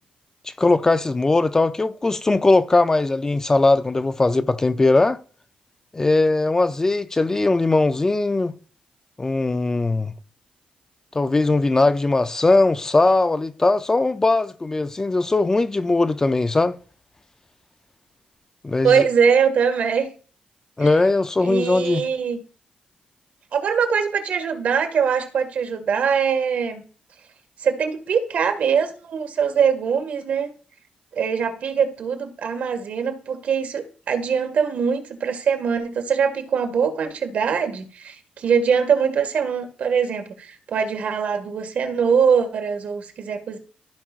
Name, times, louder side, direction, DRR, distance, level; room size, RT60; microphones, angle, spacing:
voice 1, 0.6-5.2 5.9-8.5 9.2-10.1 11.1-16.8 18.6-19.0 20.8-22.1, left 2 dB, 20° left, 0.6 m, -19 dB
voice 2, 18.8-20.1 20.8-20.9 21.4-22.4 23.5-26.8 27.6-30.5 31.2-43.6, right 6 dB, 65° right, 1.9 m, -22 dB
15.0 x 5.9 x 2.5 m
cardioid pair, 110°, 3 cm